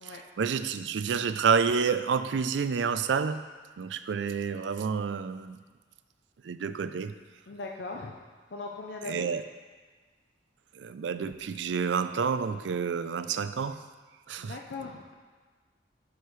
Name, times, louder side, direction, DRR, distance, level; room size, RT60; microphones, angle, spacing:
voice 1, 0.0-3.4 3.8-5.6 6.4-7.1 9.0-9.4 10.7-13.8 14.3-14.6, right 6 dB, 90° right, 12 dB, 0.4 m, -29 dB
voice 2, 7.5-8.2 8.5-9.3 14.4-15.1, left 3 dB, 70° left, 1 dB, 0.6 m, -39 dB
10.5 x 6.4 x 3.2 m, 1.4 s
head